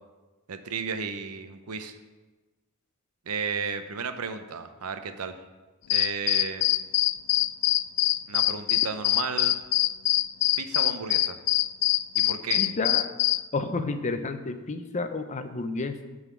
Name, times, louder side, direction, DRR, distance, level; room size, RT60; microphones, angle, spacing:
voice 1, 0.5-2.0 3.3-5.4 5.9-6.7 8.3-9.6 10.6-11.4 12.1-12.6, right 5 dB, 75° right, 9 dB, 0.7 m, -33 dB
sound 1, 5.9-13.4, left 15 dB, 90° left, 0.3 m, -24 dB
voice 2, 12.6-13.0 13.5-16.0, left 3 dB, 30° left, 9 dB, 0.6 m, -30 dB
9.1 x 4.0 x 7.0 m, 1.2 s
head